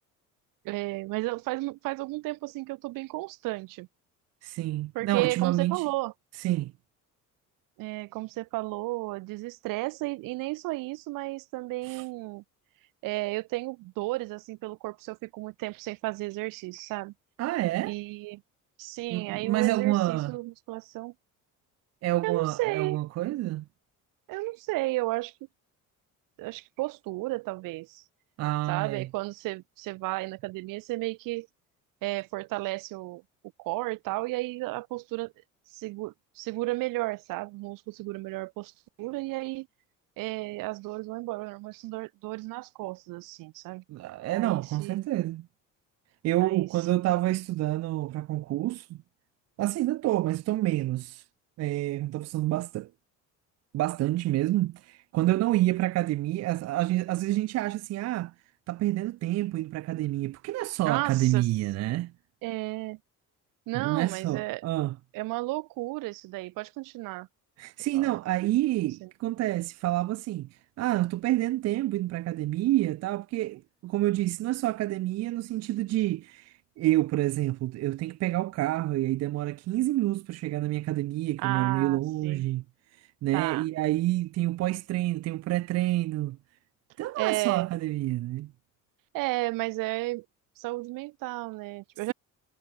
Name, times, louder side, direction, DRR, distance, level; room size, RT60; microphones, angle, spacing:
voice 1, 0.6-3.9 4.9-6.1 7.8-12.4 13.0-17.1 17.9-18.4 18.8-21.1 22.2-23.0 24.3-25.3 26.4-28.0 28.7-31.5 32.0-33.2 33.6-35.3 35.7-38.7 39.0-39.7 40.2-43.8 44.3-44.9 46.4-46.7 47.0-47.1 60.9-61.4 62.4-63.0 63.7-64.6 65.1-67.3 67.9-68.1 69.0-69.1 81.4-82.4 83.3-83.7 87.2-87.7 89.1-90.3 90.6-92.1, right 21 dB, 90° right, 1.7 m, -33 dB
voice 2, 4.4-5.8 6.4-6.7 11.9-12.0 17.4-17.9 19.1-20.4 22.0-23.6 28.4-29.1 43.9-45.5 46.2-49.0 49.6-51.2 51.6-52.9 53.7-58.3 58.7-62.1 63.7-65.0 67.6-70.5 70.8-82.6 83.0-86.4 87.0-88.5, right 16 dB, 50° right, 0.9 m, -28 dB
cardioid pair, 180°, 32 cm